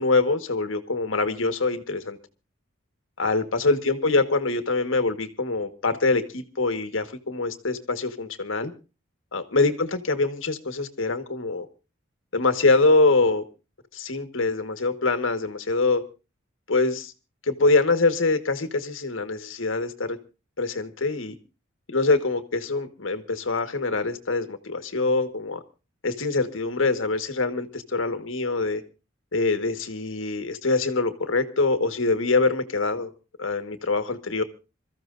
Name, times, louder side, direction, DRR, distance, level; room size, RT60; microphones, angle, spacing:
voice 1, 0.0-2.2 3.2-8.7 9.3-11.7 12.3-13.4 13.9-16.0 16.7-17.1 17.5-20.2 20.6-21.3 21.9-25.6 26.0-28.8 29.3-33.1 33.4-34.4, left 3 dB, 75° left, 1.5 m, -24 dB
26.5 x 14.0 x 2.5 m
head